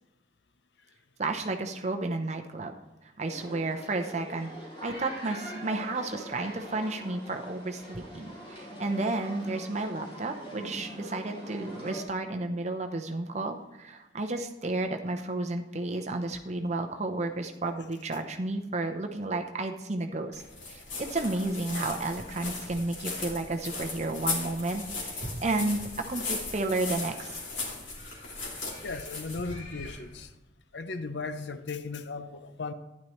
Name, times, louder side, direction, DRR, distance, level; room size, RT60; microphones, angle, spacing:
voice 1, 1.2-2.7 3.2-4.5 4.8-20.4 20.7-27.4, right 2 dB, 35° right, 5 dB, 0.7 m, -32 dB
sound 1, 3.3-12.0, equal, 30° left, 3.8 m, -43 dB
sound 2, 20.3-30.2, left 3 dB, 85° left, 2.7 m, -37 dB
voice 2, 28.8-30.3 30.7-32.7, left 3 dB, 65° left, 11 dB, 0.6 m, -36 dB
11.5 x 10.5 x 3.1 m, 1.0 s
head